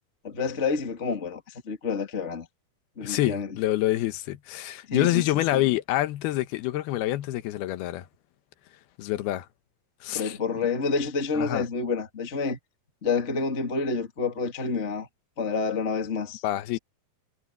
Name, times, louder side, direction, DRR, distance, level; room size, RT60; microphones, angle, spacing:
voice 1, 0.2-1.4 1.7-2.5 3.0-3.5 4.9-5.2 5.5-5.6 10.1-12.6 13.0-15.1 15.4-16.4, left 4 dB, 25° left, 2.0 m, -28 dB
voice 2, 3.0-8.1 9.0-9.5 10.0-10.7 11.3-11.6 16.4-16.8, left 15 dB, 85° left, 2.9 m, -27 dB
omnidirectional pair, 4.4 m